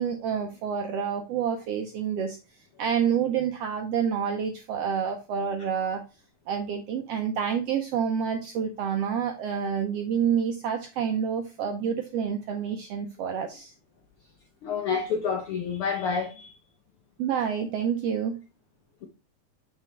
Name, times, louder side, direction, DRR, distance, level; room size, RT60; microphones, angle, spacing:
voice 1, 0.0-2.4 2.8-6.0 6.5-13.7 17.2-18.4, right 7 dB, 75° right, 1.4 m, -28 dB
voice 2, 14.6-16.6, left 6 dB, 75° left, 1.2 m, -28 dB
7.4 x 4.6 x 3.2 m
omnidirectional pair, 3.6 m